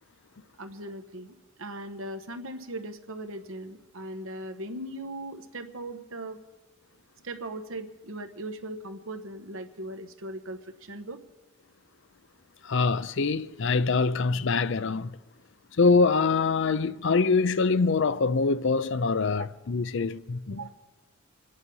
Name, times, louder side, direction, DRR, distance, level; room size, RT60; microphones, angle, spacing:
voice 1, 0.6-6.4 7.2-11.2 20.5-20.7, right 1 dB, 85° right, 1.2 m, -39 dB
voice 2, 12.6-15.1 15.8-20.6, left 4 dB, 65° left, 0.5 m, -24 dB
26.0 x 9.8 x 5.5 m
head